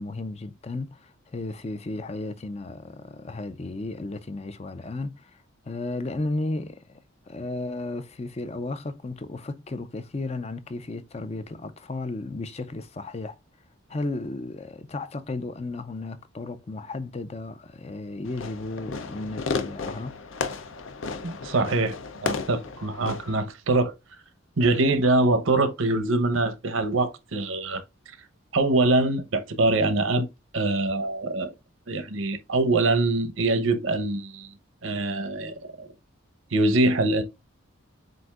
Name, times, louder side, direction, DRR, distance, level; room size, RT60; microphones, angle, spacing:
voice 1, 0.0-6.9 7.3-13.4 13.9-20.1, left 2 dB, 30° left, 0.4 m, -34 dB
Fireworks, 18.2-23.4, left 4 dB, 70° left, 0.7 m, -33 dB
voice 2, 21.2-23.9 24.6-27.8 28.5-30.3 30.5-31.5 31.9-34.5 34.8-35.9 36.5-37.2, right 2 dB, 75° right, 0.9 m, -24 dB
7.7 x 2.6 x 2.4 m
head